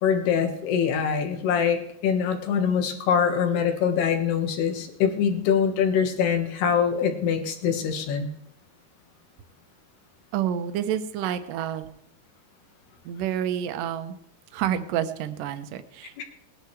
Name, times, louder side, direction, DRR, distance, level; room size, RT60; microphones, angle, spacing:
voice 1, 0.0-8.3 16.2-16.3, left 7 dB, 75° left, 4 dB, 3.4 m, -24 dB
voice 2, 10.3-11.9 13.0-14.2 14.5-16.2, right 10 dB, 70° right, 9 dB, 2.1 m, -29 dB
20.5 x 10.5 x 3.2 m, 0.77 s
omnidirectional pair, 4.8 m